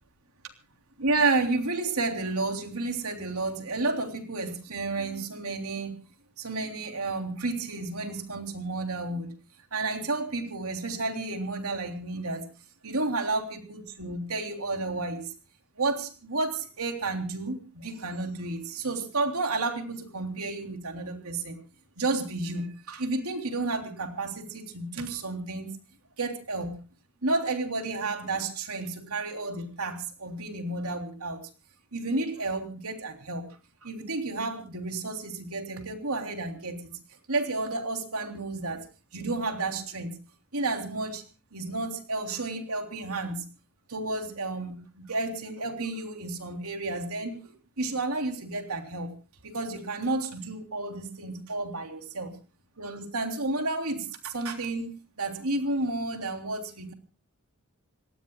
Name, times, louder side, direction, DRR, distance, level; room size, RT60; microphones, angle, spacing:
voice 1, 1.0-6.0 6.4-9.3 9.7-12.5 12.8-15.3 15.8-21.6 22.0-25.8 26.2-26.8 27.2-31.4 31.9-33.5 33.8-37.0 37.3-38.8 39.1-40.2 40.5-41.2 41.5-43.5 43.9-49.1 49.4-52.3 52.8-54.9 55.2-56.9, right 3 dB, 80° right, 5 dB, 3.3 m, -31 dB
27.5 x 19.0 x 2.3 m, 0.34 s
head